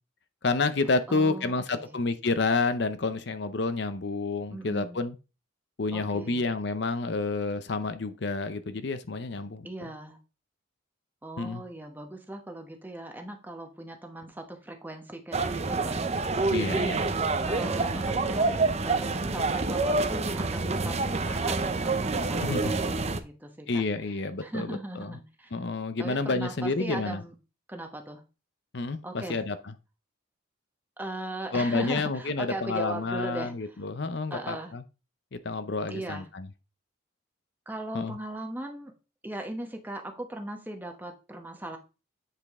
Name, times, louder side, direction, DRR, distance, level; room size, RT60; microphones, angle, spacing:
voice 1, 0.4-5.2 5.8-9.9 11.4-11.6 16.5-17.0 22.4-22.7 23.7-25.2 25.5-27.2 28.7-29.7 31.5-34.8 35.3-36.5 37.9-38.2, left 3 dB, 55° left, 0.6 m, -29 dB
voice 2, 1.1-2.0 4.5-5.0 5.9-6.5 9.6-10.2 11.2-16.9 17.5-23.8 24.4-25.5 26.0-27.3 27.7-28.2 29.0-29.4 31.0-33.5 34.3-34.7 35.9-36.2 37.7-38.9 39.2-41.8, right 1 dB, 10° right, 1.0 m, -39 dB
sound 1, 15.3-23.2, right 3 dB, 30° right, 0.6 m, -27 dB
8.4 x 5.1 x 3.6 m
head